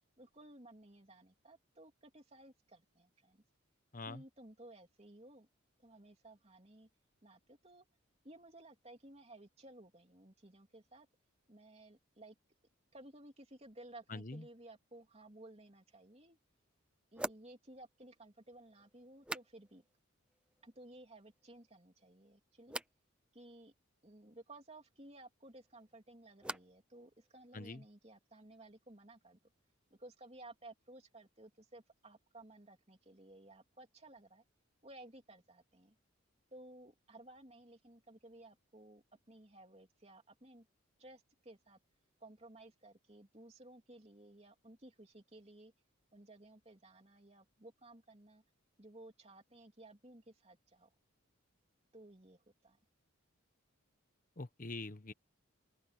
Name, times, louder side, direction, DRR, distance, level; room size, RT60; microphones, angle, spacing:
voice 1, 0.2-3.4 4.1-5.5 5.8-6.9 7.2-7.8 8.2-11.1 11.5-12.3 12.9-16.4 17.1-19.8 20.6-22.8 23.3-23.7 24.0-29.4 29.9-34.4 34.8-35.9 36.5-40.7 41.0-41.8 42.2-45.7 46.1-48.4 48.8-50.9 51.9-52.8, right 1 dB, 30° right, 3.1 m, -57 dB
voice 2, 3.9-4.2 14.1-14.5 27.5-27.8 54.4-55.1, left 2 dB, 40° left, 1.1 m, -44 dB
sound 1, 15.9-16.0 17.1-20.0 20.3-20.9 21.2-21.8 22.7-23.0 25.4-26.9 27.2-27.8, right 1 dB, 5° right, 0.6 m, -48 dB
open air
head